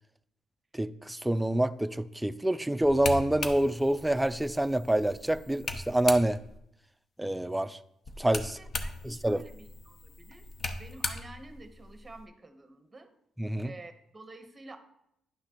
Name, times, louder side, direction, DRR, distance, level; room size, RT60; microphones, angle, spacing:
voice 1, 0.7-6.4 7.2-7.8 8.2-8.6 9.0-9.4 13.4-13.7, right 1 dB, 5° right, 12 dB, 0.3 m, -27 dB
sound 1, 2.8-6.6 8.0-12.2, left 3 dB, 45° left, 0.7 m, -39 dB
voice 2, 8.4-10.5 10.8-13.1 13.6-14.8, right 2 dB, 20° right, 8 dB, 0.9 m, -49 dB
10.5 x 5.8 x 2.9 m, 0.78 s
cardioid pair, 90°, 0 cm